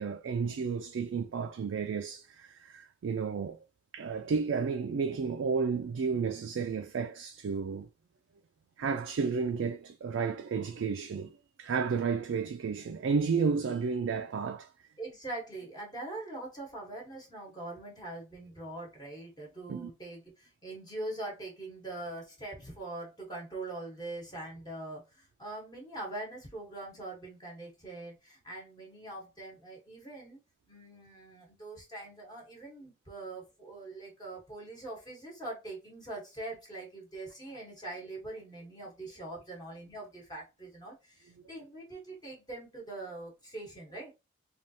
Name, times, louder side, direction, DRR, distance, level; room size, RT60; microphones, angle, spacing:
voice 1, 0.0-3.6 3.9-7.9 8.8-14.7 19.7-19.9, right 5 dB, 70° right, 0.3 m, -32 dB
voice 2, 15.0-30.4 30.7-44.1, right 2 dB, 20° left, 1.0 m, -43 dB
3.3 x 2.4 x 2.7 m
head